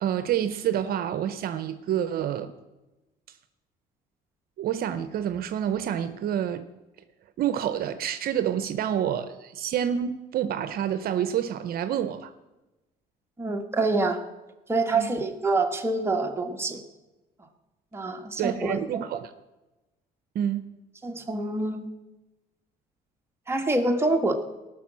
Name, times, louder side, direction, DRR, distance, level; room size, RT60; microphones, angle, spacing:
voice 1, 0.0-2.5 4.6-6.7 7.4-12.3 14.9-15.1 18.4-19.3 20.3-20.6, right 10 dB, 65° right, 0.7 m, -28 dB
voice 2, 13.4-14.2 14.7-16.8 17.9-19.1 21.0-21.9 23.5-24.3, right 2 dB, 15° right, 1.6 m, -26 dB
18.5 x 6.1 x 7.5 m
cardioid pair, 110°, 17 cm